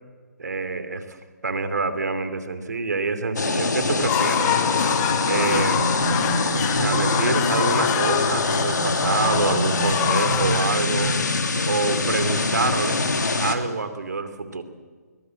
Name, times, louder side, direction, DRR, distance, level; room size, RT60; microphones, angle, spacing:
voice 1, 0.4-1.2 1.4-4.6 5.2-5.9 6.7-11.1 11.6-13.0 13.4-14.6, right 4 dB, 70° right, 10 dB, 2.7 m, -26 dB
sound 1, 3.4-13.6, left 3 dB, 85° left, 2.8 m, -24 dB
sound 2, 3.9-12.0, left 12 dB, 15° left, 0.9 m, -27 dB
sound 3, 4.7-11.2, right 2 dB, 50° right, 5.1 m, -30 dB
22.0 x 19.0 x 7.8 m, 1.5 s
hypercardioid pair, 160°, 9 cm